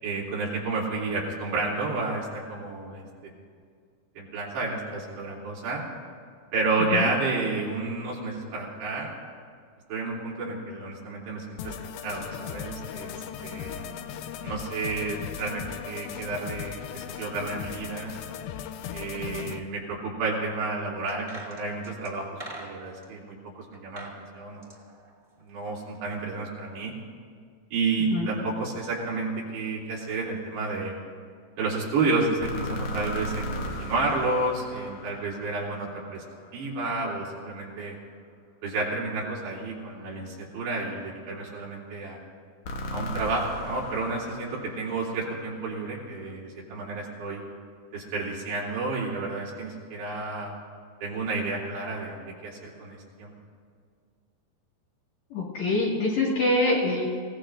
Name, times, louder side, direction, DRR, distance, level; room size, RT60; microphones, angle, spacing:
voice 1, 0.0-3.3 4.2-5.8 6.5-9.1 9.9-13.1 13.4-13.9 14.4-18.1 18.9-24.7 25.4-26.9 27.7-31.0 31.6-36.2 36.5-38.0 38.6-42.2 42.9-47.4 47.9-50.5 51.0-53.3, right 3 dB, 85° right, -5 dB, 5.4 m, -31 dB
sound 1, 11.6-19.6, left 8 dB, 85° left, 2.1 m, -37 dB
sound 2, 21.1-23.1 23.7-24.2 24.5-25.8 26.1-26.2, right 2 dB, 20° right, 1.9 m, -44 dB
sound 3, 32.4-36.5 42.6-45.8, equal, 65° left, 1.8 m, -36 dB
voice 2, 55.3-57.1, left 2 dB, 50° left, -4 dB, 2.9 m, -25 dB
27.0 x 17.5 x 2.6 m, 2.1 s
omnidirectional pair, 4.8 m